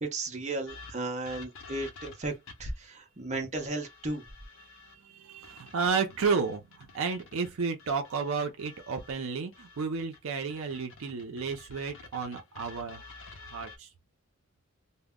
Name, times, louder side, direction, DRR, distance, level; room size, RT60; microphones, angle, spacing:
voice 1, 0.0-2.3 2.6-4.2, right 2 dB, 35° right, 0.7 m, -34 dB
sound 1, 0.7-2.8 3.5-5.0 5.4-9.2 9.5-13.8, left 4 dB, 65° left, 0.7 m, -50 dB
voice 2, 5.0-13.0 13.5-13.9, right 5 dB, 70° right, 0.5 m, -32 dB
2.1 x 2.0 x 3.5 m
head